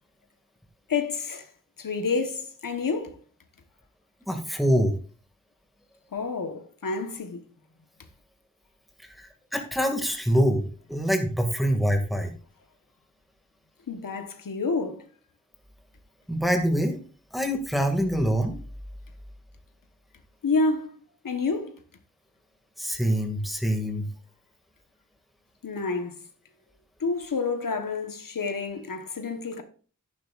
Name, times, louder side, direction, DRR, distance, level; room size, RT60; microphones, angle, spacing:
voice 1, 0.9-1.5 1.8-3.2 6.1-7.4 13.9-15.0 20.4-20.9 21.2-21.8 25.6-26.2 27.0-29.6, left 4 dB, 85° left, 1.3 m, -29 dB
voice 2, 4.3-4.9 9.2-12.3 16.3-17.0 17.3-18.6 22.8-24.1, equal, ahead, 2.2 m, -25 dB
11.0 x 9.6 x 2.5 m
wide cardioid pair, 55°, 32 cm